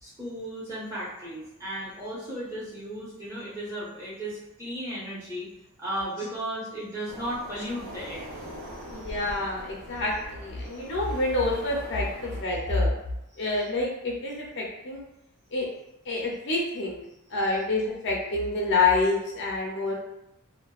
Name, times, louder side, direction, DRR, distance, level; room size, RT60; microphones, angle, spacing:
voice 1, 0.0-5.5 5.8-8.3 8.6-9.2 10.7-10.8 13.3-13.4, right 1 dB, 15° right, -8 dB, 0.8 m, -35 dB
sound 1, 7.1-12.4, equal, 55° right, 0.7 m, -42 dB
voice 2, 8.9-12.9 13.4-15.0 15.5-15.6 16.1-17.0 17.3-19.9, left 3 dB, 55° left, -3 dB, 0.6 m, -27 dB
2.5 x 2.2 x 2.3 m, 0.87 s
head